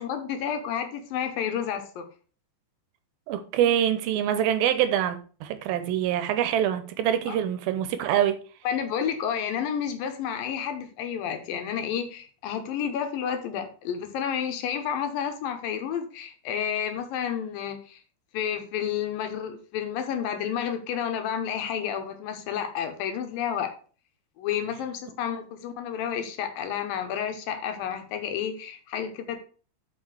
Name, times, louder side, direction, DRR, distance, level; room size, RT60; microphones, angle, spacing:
voice 1, 0.0-2.1 7.3-7.4 8.6-18.0 18.3-23.7 24.4-29.4, left 8 dB, 70° left, 2.5 m, -30 dB
voice 2, 3.3-8.4, right 10 dB, 80° right, 2.5 m, -25 dB
5.9 x 5.8 x 6.2 m
omnidirectional pair, 4.4 m